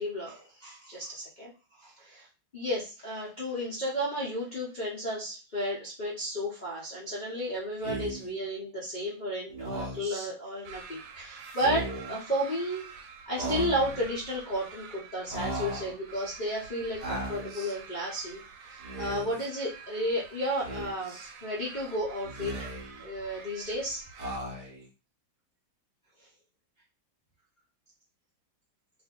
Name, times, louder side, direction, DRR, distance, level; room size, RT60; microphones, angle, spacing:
voice 1, 0.0-1.5 1.8-2.3 2.5-12.9 13.3-22.5 23.0-24.0, equal, 85° left, -6 dB, 0.4 m, -33 dB
Speech, 7.8-8.3 9.5-10.3 11.5-12.1 13.4-14.1 15.3-16.0 17.0-17.8 18.8-19.4 20.6-21.3 22.2-23.0 24.2-24.9, right 1 dB, 55° right, 0.4 m, -37 dB
sound 1, 10.6-24.4, right 5 dB, 80° right, 1.3 m, -48 dB
2.7 x 2.6 x 3.6 m, 0.33 s
omnidirectional pair, 2.1 m